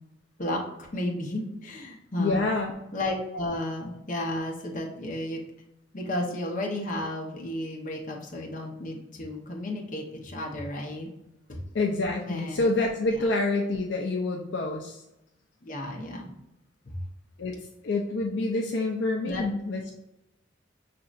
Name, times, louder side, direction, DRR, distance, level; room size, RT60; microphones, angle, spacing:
voice 1, 0.9-2.5 2.9-5.4 5.9-11.1 11.5-11.6 12.3-12.6 13.1-13.3 15.6-16.3 16.9-17.0 19.2-19.4, left 1 dB, 40° left, 0 dB, 0.8 m, -33 dB
voice 2, 2.2-2.7 11.7-15.0 17.4-19.9, left 2 dB, 65° left, 1 dB, 0.4 m, -27 dB
5.1 x 2.8 x 2.4 m, 0.90 s
head